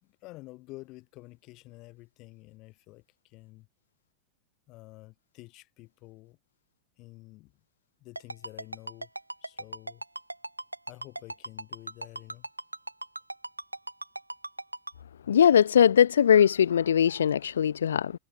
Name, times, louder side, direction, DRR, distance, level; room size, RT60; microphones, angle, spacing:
voice 1, 0.0-3.7 4.7-6.4 7.0-7.5 8.0-9.1 9.4-10.0 10.9-12.5, left 21 dB, 40° left, 5.3 m, -49 dB
Ringtone, 8.2-14.9, right 2 dB, 85° right, 0.6 m, -37 dB
voice 2, 15.3-18.1, left 8 dB, 65° left, 0.4 m, -20 dB
figure-of-eight pair, 90°, 0 cm